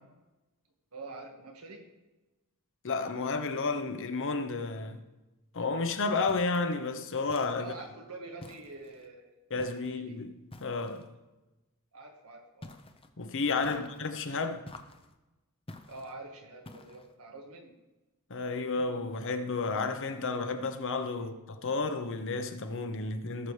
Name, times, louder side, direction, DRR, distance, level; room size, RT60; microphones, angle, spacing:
voice 1, 0.9-1.9 7.6-9.3 9.8-10.2 11.9-12.8 13.7-14.0 15.9-17.8 21.1-21.3, right 2 dB, 80° right, 1.7 m, -46 dB
voice 2, 2.8-5.0 5.5-7.7 9.5-11.1 13.2-14.7 18.3-23.5, left 3 dB, 60° left, 0.9 m, -32 dB
sound 1, 6.3-6.7 7.3-7.9 8.4-9.1 9.6-10.0 10.5-11.1 12.6-13.1 13.6-14.1 14.7-15.1 15.7-16.1 16.7-17.1, left 2 dB, 25° left, 0.7 m, -50 dB
17.5 x 6.9 x 3.3 m
head